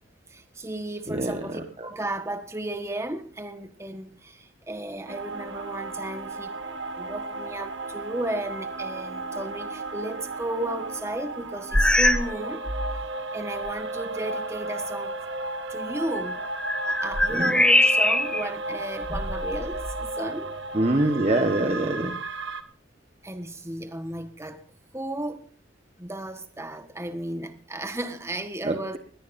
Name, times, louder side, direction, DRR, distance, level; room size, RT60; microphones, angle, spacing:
voice 1, 0.3-6.6 7.0-12.6 13.3-15.2 15.7-16.4 16.9-20.6 23.2-24.6 24.9-25.5 26.0-29.0, right 1 dB, 15° right, 1.4 m, -34 dB
sound 1, 5.1-22.6, right 2 dB, 70° right, 1.6 m, -34 dB
sound 2, 11.7-12.4 12.7-13.0 13.7-13.8 16.2-18.5 19.0-20.1, left 1 dB, 5° left, 0.9 m, -23 dB
voice 2, 20.7-22.1 28.6-29.0, right 1 dB, 35° right, 1.3 m, -24 dB
21.0 x 17.0 x 2.7 m
head